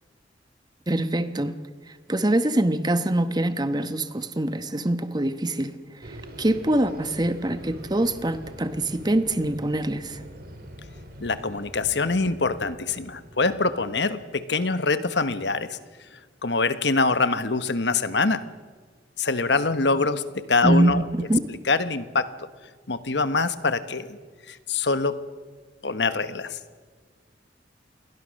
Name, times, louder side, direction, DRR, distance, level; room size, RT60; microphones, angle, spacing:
voice 1, 0.9-1.6 2.1-5.7 6.0-10.2 20.6-21.5, right 1 dB, 20° right, 1.1 m, -24 dB
sound 1, 6.0-14.3, equal, 55° right, 3.9 m, -44 dB
voice 2, 11.2-15.8 16.4-18.4 19.2-21.0 21.7-22.3 22.9-24.1 24.5-25.2 25.8-26.6, left 3 dB, 70° left, 1.2 m, -24 dB
28.5 x 22.0 x 6.5 m
head